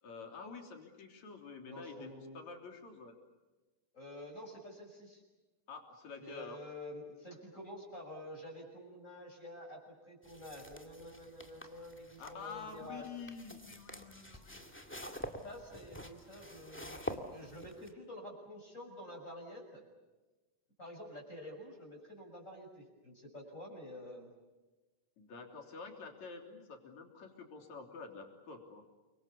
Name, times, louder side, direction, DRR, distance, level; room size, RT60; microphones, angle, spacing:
voice 1, 0.0-3.1 5.7-6.6 12.2-14.6 25.2-28.8, left 4 dB, 70° left, 3 dB, 4.8 m, -48 dB
voice 2, 1.7-2.4 3.9-5.2 6.2-13.1 15.4-19.8 20.8-24.3, left 1 dB, 25° left, 0 dB, 6.6 m, -49 dB
sound 1, 10.2-17.9, equal, 5° left, 1.5 m, -47 dB
29.5 x 25.0 x 7.1 m, 1.2 s
omnidirectional pair, 3.4 m